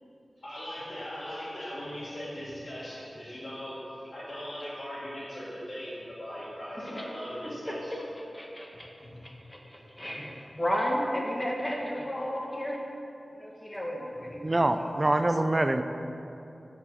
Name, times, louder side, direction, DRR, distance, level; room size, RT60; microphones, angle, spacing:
voice 1, 0.4-7.9 9.0-9.2 13.6-13.8, equal, 50° left, -11 dB, 1.9 m, -39 dB
voice 2, 7.4-8.9 9.2-12.8 13.3-14.5, equal, 15° left, -1 dB, 1.3 m, -33 dB
voice 3, 14.4-15.8, right 1 dB, 30° right, 9 dB, 0.4 m, -25 dB
12.5 x 4.8 x 4.2 m, 2.8 s
wide cardioid pair, 80°, 0 cm